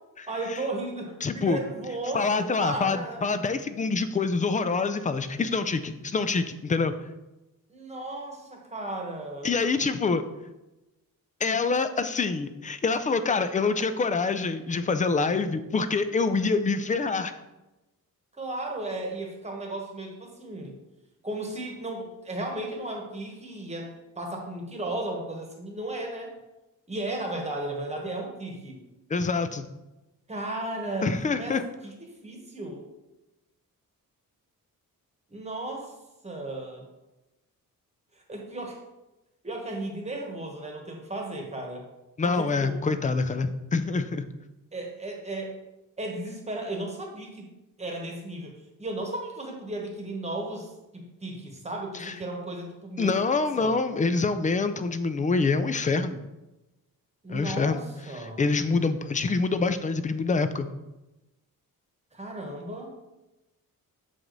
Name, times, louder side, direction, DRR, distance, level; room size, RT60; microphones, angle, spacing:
voice 1, 0.3-3.2 7.7-9.5 18.4-20.8 21.2-26.3 26.9-28.8 30.3-31.1 31.4-32.9 35.3-35.9 36.2-36.9 38.3-38.8 39.4-41.8 42.2-42.8 44.7-45.6 46.0-47.5 47.8-53.8 57.2-58.4 62.1-63.0, right 2 dB, 20° right, 1 dB, 1.2 m, -35 dB
voice 2, 1.2-1.6 2.1-6.9 9.4-10.2 11.4-17.3 29.1-29.6 31.0-31.6 42.2-44.2 51.9-52.1 53.0-56.2 57.3-57.8 58.1-60.7, left 4 dB, 25° left, 11 dB, 0.3 m, -26 dB
7.3 x 4.9 x 3.9 m, 1.0 s
wide cardioid pair, 160°, 35 cm